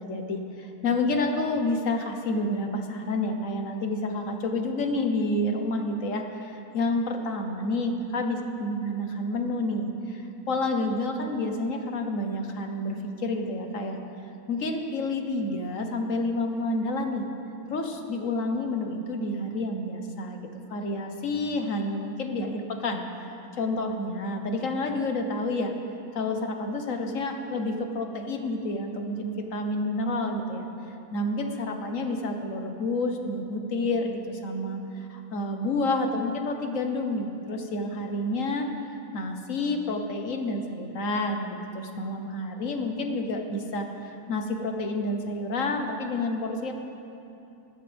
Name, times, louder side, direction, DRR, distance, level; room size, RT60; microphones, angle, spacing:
voice 1, 0.0-14.0 14.5-17.3 17.7-20.4 20.7-23.3 23.6-25.7 26.1-30.7 31.1-38.7 39.1-46.7, left 2 dB, 60° left, 4 dB, 1.4 m, -29 dB
20.5 x 14.5 x 3.5 m, 2.8 s
omnidirectional pair, 1.6 m